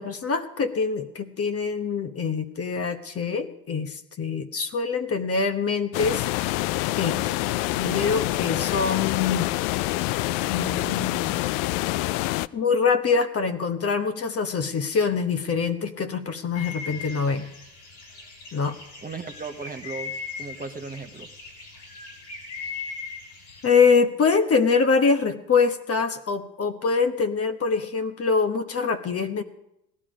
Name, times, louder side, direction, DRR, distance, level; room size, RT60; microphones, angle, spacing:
voice 1, 0.0-6.3 7.0-7.2 7.7-9.5 10.5-11.3 12.5-17.5 18.5-18.8 23.6-29.4, left 5 dB, 30° left, 9 dB, 1.1 m, -24 dB
sound 1, 5.9-12.5, left 18 dB, 60° left, 0.5 m, -26 dB
sound 2, 16.5-23.7, left 5 dB, 85° left, 6.8 m, -39 dB
voice 2, 19.0-20.1 20.4-21.3, right 4 dB, 15° right, 5 dB, 1.1 m, -36 dB
17.0 x 12.0 x 5.1 m, 0.85 s
hypercardioid pair, 80°, 49 cm